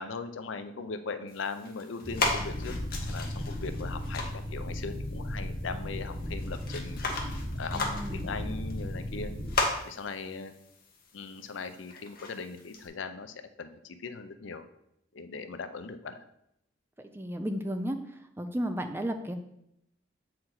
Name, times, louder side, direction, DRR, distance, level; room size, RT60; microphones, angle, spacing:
voice 1, 0.0-2.7 3.1-7.0 7.5-7.8 8.1-9.3 9.8-10.5 11.1-14.6 15.1-16.2, left 4 dB, 80° left, 10 dB, 0.5 m, -39 dB
sound 1, 1.3-12.9, left 3 dB, 50° left, 1.1 m, -37 dB
sound 2, 2.0-9.6, left 1 dB, 5° left, 1.4 m, -36 dB
voice 2, 7.7-8.3 17.0-18.0 18.4-19.3, equal, 10° right, 7 dB, 0.4 m, -33 dB
7.6 x 4.4 x 3.9 m, 0.80 s
head